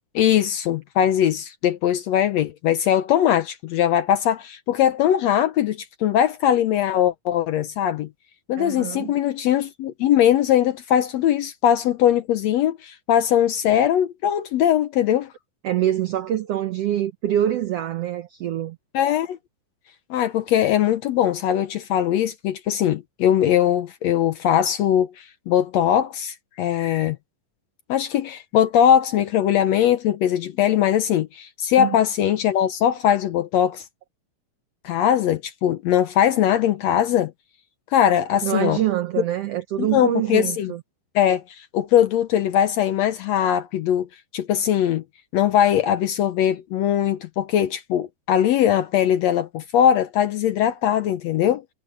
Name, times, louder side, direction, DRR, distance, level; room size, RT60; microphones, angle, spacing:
voice 1, 0.1-8.1 8.5-15.3 18.9-19.4 20.1-27.2 27.9-33.8 34.8-37.3 37.9-38.8 39.8-40.7 41.1-44.1 44.3-45.0 45.3-51.6, left 10 dB, 70° left, 1.7 m, -20 dB
voice 2, 8.6-9.1 15.6-18.8 31.8-32.0 38.4-40.8, right 12 dB, 90° right, 1.4 m, -25 dB
omnidirectional pair, 3.8 m